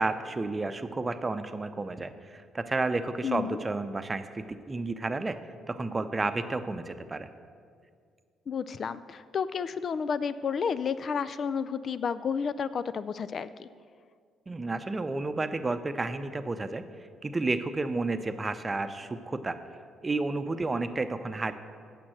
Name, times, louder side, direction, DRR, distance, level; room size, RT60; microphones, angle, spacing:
voice 1, 0.0-5.4 5.7-7.3 14.5-16.9 17.2-19.6 20.0-21.5, right 3 dB, 30° right, 10 dB, 0.7 m, -31 dB
voice 2, 3.2-3.6 8.5-13.7, left 6 dB, 50° left, 14 dB, 0.3 m, -31 dB
8.6 x 6.7 x 7.8 m, 2.1 s
figure-of-eight pair, 45°, 0 cm